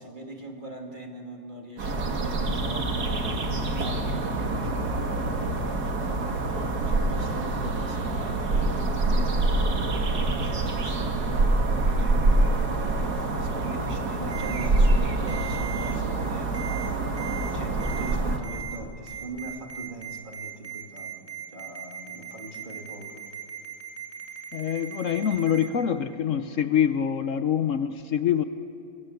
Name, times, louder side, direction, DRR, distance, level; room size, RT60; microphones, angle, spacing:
voice 1, 0.0-17.0 17.5-23.3, right 2 dB, 25° right, 3 dB, 2.2 m, -42 dB
sound 1, 1.8-18.4, right 2 dB, 55° right, 2.3 m, -26 dB
Ringtone, 14.3-14.7 15.3-15.9 16.5-16.9 17.2-17.5 17.8-18.1 18.4-18.8 19.1-25.7, right 9 dB, 5° right, 2.7 m, -38 dB
voice 2, 24.5-28.4, left 9 dB, 65° left, 11 dB, 0.7 m, -25 dB
23.5 x 23.0 x 8.3 m, 2.7 s
omnidirectional pair, 2.1 m